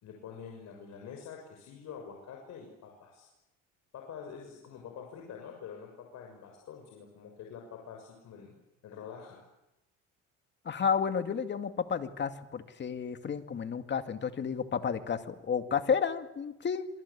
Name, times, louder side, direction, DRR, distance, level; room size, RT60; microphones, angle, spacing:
voice 1, 0.0-3.3 3.9-8.5 8.8-9.4, left 7 dB, 60° left, 1 dB, 6.6 m, -46 dB
voice 2, 10.7-16.9, left 6 dB, 35° left, 8 dB, 2.2 m, -31 dB
27.0 x 25.0 x 8.6 m, 0.92 s
cardioid pair, 115°, 31 cm